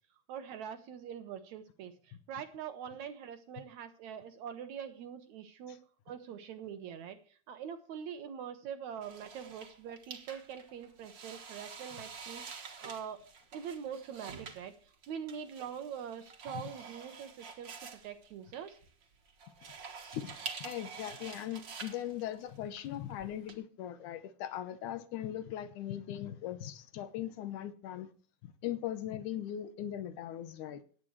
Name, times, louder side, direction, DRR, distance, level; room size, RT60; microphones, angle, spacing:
voice 1, 0.3-5.8 6.1-13.2 13.5-18.8, right 8 dB, 75° right, 1.7 m, -44 dB
sound 1, 9.0-23.5, right 5 dB, 50° right, 1.4 m, -48 dB
voice 2, 20.1-28.1 28.4-30.8, left 11 dB, 75° left, 1.9 m, -39 dB
18.5 x 8.5 x 3.2 m
omnidirectional pair, 4.4 m